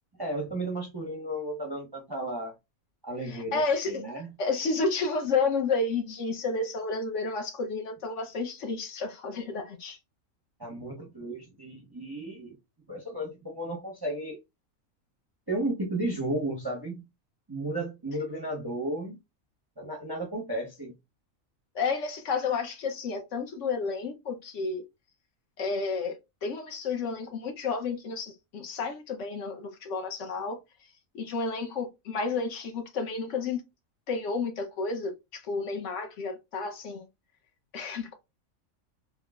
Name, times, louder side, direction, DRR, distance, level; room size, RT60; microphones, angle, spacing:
voice 1, 0.2-2.5 3.0-4.3 10.6-12.5 12.9-14.4 15.5-17.1 17.5-19.2 19.8-20.9, right 1 dB, 25° right, 0.5 m, -34 dB
voice 2, 3.3-4.0 4.4-10.0 21.7-24.8 25.6-26.2 26.4-30.6 31.1-33.6 34.1-37.1 37.7-38.1, left 4 dB, 65° left, 0.9 m, -31 dB
3.6 x 2.0 x 2.3 m
omnidirectional pair, 1.5 m